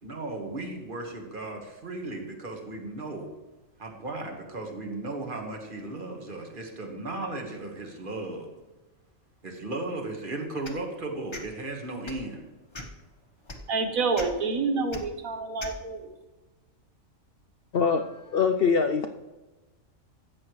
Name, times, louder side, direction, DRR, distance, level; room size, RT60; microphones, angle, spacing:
voice 1, 0.0-3.3 3.8-8.5 9.4-12.4, right 2 dB, 40° right, 2 dB, 1.7 m, -36 dB
sound 1, 10.6-10.8 11.3-11.5 12.0-12.3 12.7-13.0 13.5-13.6 14.1-14.3 14.9-15.0 15.6-15.8, left 2 dB, 20° left, 1.0 m, -39 dB
voice 2, 13.7-16.1, right 4 dB, 85° right, 5 dB, 1.6 m, -28 dB
voice 3, 17.7-19.1, left 5 dB, 60° left, 7 dB, 0.6 m, -24 dB
13.5 x 8.6 x 3.1 m, 1.1 s
omnidirectional pair, 1.4 m